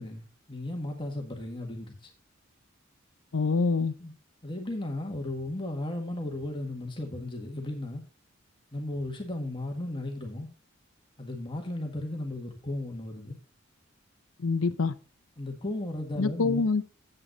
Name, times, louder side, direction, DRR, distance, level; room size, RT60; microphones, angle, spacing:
voice 1, 0.0-2.1 4.0-4.1 4.4-8.0 8.7-10.5 11.2-13.4 15.4-16.6, left 1 dB, 25° left, 1.6 m, -35 dB
voice 2, 3.3-3.9 14.4-15.0 16.2-16.8, left 4 dB, 85° left, 0.6 m, -25 dB
9.1 x 8.0 x 4.0 m
head